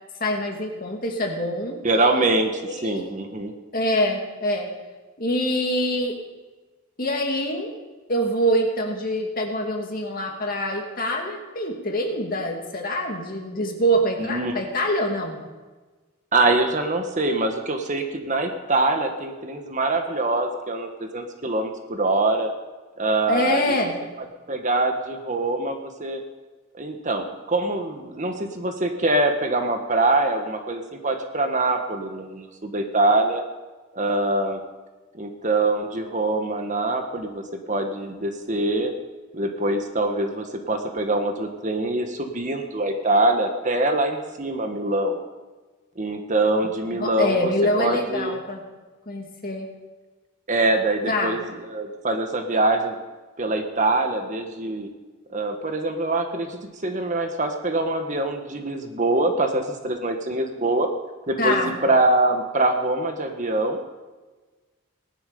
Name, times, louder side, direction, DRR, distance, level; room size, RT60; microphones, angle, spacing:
voice 1, 0.2-1.8 2.6-3.1 3.7-4.7 5.2-6.2 7.0-7.7 8.1-15.4 23.3-24.0 47.0-48.6 49.1-49.7 51.1-51.4 61.4-61.8, equal, 45° left, 1 dB, 2.4 m, -25 dB
voice 2, 1.8-3.5 14.3-14.5 16.3-22.5 23.0-23.7 24.5-26.2 26.7-33.4 33.9-34.6 35.2-38.9 39.3-45.2 46.0-47.5 47.8-48.4 50.5-52.9 53.4-54.9 55.3-60.9 61.3-63.8, right 2 dB, 35° right, 5 dB, 1.4 m, -24 dB
19.0 x 11.0 x 5.3 m, 1.3 s
head